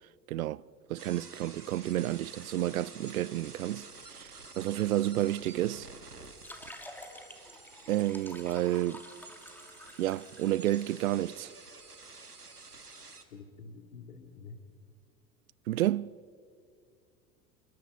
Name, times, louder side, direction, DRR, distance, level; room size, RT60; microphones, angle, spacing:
voice 1, 0.3-0.6 0.9-5.9 7.9-9.0 10.0-11.5 15.7-16.2, right 14 dB, 70° right, 0.5 m, -30 dB
sound 1, 1.0-13.2, right 3 dB, 90° right, 1.3 m, -50 dB
sound 2, 6.2-11.1, left 1 dB, 5° left, 2.4 m, -49 dB
voice 2, 13.3-14.6, left 4 dB, 70° left, 2.4 m, -48 dB
27.0 x 22.5 x 5.2 m
figure-of-eight pair, 75°, 45 cm